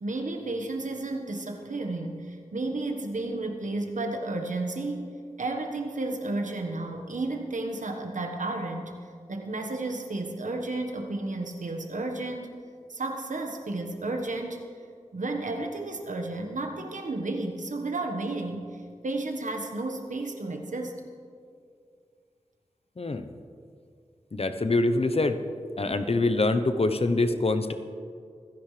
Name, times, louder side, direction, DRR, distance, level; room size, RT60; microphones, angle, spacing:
voice 1, 0.0-5.1 5.4-8.9 9.3-12.6 12.9-14.7 15.1-21.0, right 2 dB, 80° right, 3 dB, 1.4 m, -32 dB
voice 2, 24.3-25.4 25.8-27.7, left 2 dB, 50° left, 9 dB, 0.9 m, -25 dB
25.5 x 10.5 x 3.3 m, 2.3 s
cardioid pair, 45°, 13 cm